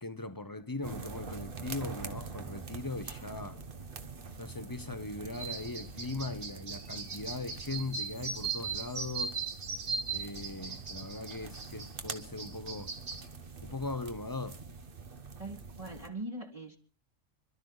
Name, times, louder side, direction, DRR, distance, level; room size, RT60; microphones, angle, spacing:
voice 1, 0.0-3.6 4.4-9.4 10.1-12.9 13.6-14.6, left 2 dB, 20° left, 0.8 m, -39 dB
sound 1, 0.8-16.1, right 4 dB, 50° right, 1.4 m, -45 dB
sound 2, 5.3-13.2, right 4 dB, 80° right, 2.2 m, -38 dB
voice 2, 15.4-16.8, right 1 dB, 30° right, 1.7 m, -41 dB
26.5 x 12.5 x 4.0 m
omnidirectional pair, 1.3 m